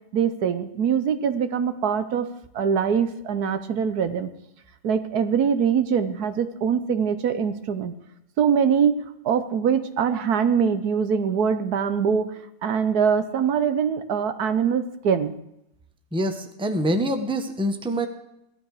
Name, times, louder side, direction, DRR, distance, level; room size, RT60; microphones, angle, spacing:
voice 1, 0.1-2.3 2.5-4.3 4.8-7.9 8.4-9.0 9.2-12.3 12.6-15.3, right 7 dB, 80° right, 10 dB, 1.5 m, -23 dB
voice 2, 16.1-18.1, right 1 dB, 5° right, 6 dB, 1.0 m, -25 dB
16.5 x 12.5 x 4.9 m, 0.82 s
omnidirectional pair, 1.6 m